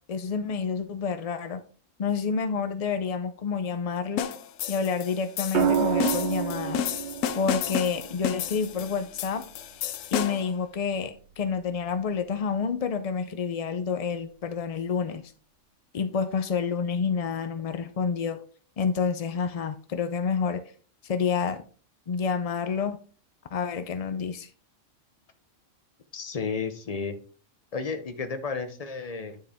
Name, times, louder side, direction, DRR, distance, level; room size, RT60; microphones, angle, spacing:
voice 1, 0.1-1.6 2.0-4.3 4.7-6.8 7.4-9.4 10.1-15.2 15.9-18.4 18.8-20.6 21.0-21.6 22.1-23.0 23.5-24.5, left 6 dB, 65° left, 9 dB, 0.3 m, -28 dB
sound 1, 4.2-10.6, left 9 dB, 90° left, 1.0 m, -32 dB
sound 2, 5.5-9.7 11.4-11.8, right 8 dB, 50° right, 0.7 m, -29 dB
voice 2, 26.1-27.2 27.7-29.4, left 5 dB, 35° left, 9 dB, 0.7 m, -32 dB
9.7 x 4.8 x 3.4 m, 0.41 s
omnidirectional pair, 1.3 m